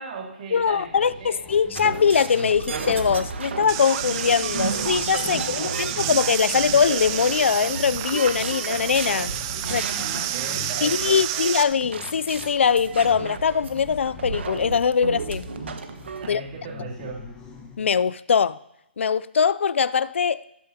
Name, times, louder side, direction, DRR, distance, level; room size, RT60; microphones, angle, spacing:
voice 1, 0.0-1.4 5.2-6.1 9.6-11.5 16.2-17.2, right 3 dB, 40° right, 2.9 m, -38 dB
voice 2, 0.5-9.3 9.7-9.8 10.8-15.5 16.3-16.4 17.8-18.6 19.0-20.4, left 6 dB, 85° left, 0.4 m, -22 dB
sound 1, 0.6-18.0, left 4 dB, 15° left, 1.1 m, -44 dB
sound 2, 1.7-16.3, right 5 dB, 70° right, 1.4 m, -33 dB
sound 3, 3.7-11.6, right 12 dB, 20° right, 0.5 m, -30 dB
14.0 x 12.5 x 2.8 m
hypercardioid pair, 165°, 6 cm